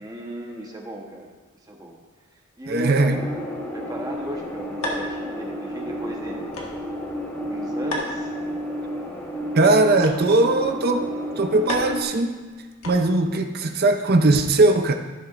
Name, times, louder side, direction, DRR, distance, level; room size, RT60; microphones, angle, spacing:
voice 1, 0.0-2.0 2.3-3.3 3.7-6.6 7.3-8.4, right 1 dB, 15° right, 0 dB, 1.1 m, -37 dB
voice 2, 2.7-3.3 9.5-11.1 11.4-12.5 12.8-14.9, right 2 dB, 45° right, 6 dB, 0.6 m, -19 dB
sound 1, 3.1-12.0, equal, 10° left, 1.2 m, -31 dB
sound 2, 4.8-13.4, left 1 dB, 70° left, 1.7 m, -37 dB
14.5 x 7.6 x 2.5 m, 1.3 s
head